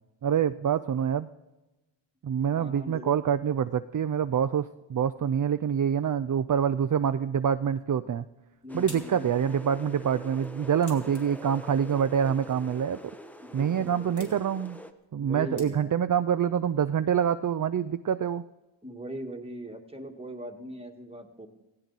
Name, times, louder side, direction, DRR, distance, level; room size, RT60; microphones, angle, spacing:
voice 1, 0.2-1.3 2.2-8.2 8.7-13.0 13.5-14.8 15.1-18.4, right 8 dB, 45° right, 12 dB, 0.4 m, -26 dB
voice 2, 2.5-3.2 8.6-9.3 13.4-14.4 15.2-16.0 18.8-21.5, right 1 dB, 10° right, 3 dB, 1.7 m, -40 dB
sound 1, 8.2-16.2, left 1 dB, 40° left, 3.2 m, -53 dB
sound 2, 8.7-14.9, equal, 5° left, 0.9 m, -45 dB
16.5 x 16.5 x 4.0 m, 1.0 s
wide cardioid pair, 75°, 47 cm